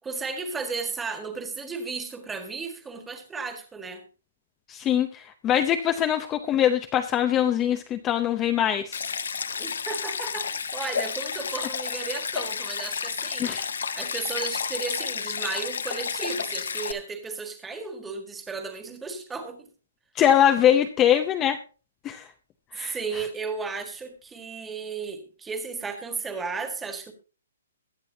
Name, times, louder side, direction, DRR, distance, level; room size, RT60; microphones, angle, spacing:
voice 1, 0.0-4.0 9.6-13.6 14.0-19.7 22.8-27.1, right 4 dB, 10° right, 7 dB, 1.7 m, -34 dB
voice 2, 4.7-9.0 13.4-13.7 20.2-21.6 22.0-22.3 22.7-23.0, left 10 dB, 15° left, 8 dB, 0.6 m, -22 dB
Stream, 8.9-16.9, left 6 dB, 85° left, 1.4 m, -31 dB
22.0 x 7.5 x 2.8 m, 0.35 s
hypercardioid pair, 165°, 0 cm